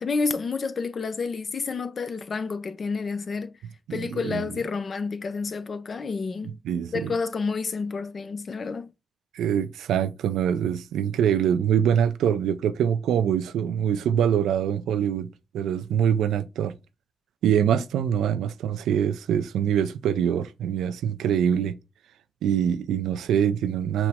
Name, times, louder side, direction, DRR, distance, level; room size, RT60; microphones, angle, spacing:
voice 1, 0.0-3.5 3.9-6.6 6.9-8.9, left 4 dB, 60° left, 0.5 m, -29 dB
voice 2, 3.9-4.5 6.6-7.2 9.3-16.7 17.4-21.8 22.4-24.1, right 9 dB, 90° right, 0.3 m, -24 dB
5.9 x 2.0 x 3.4 m
supercardioid pair, 45°, 0 cm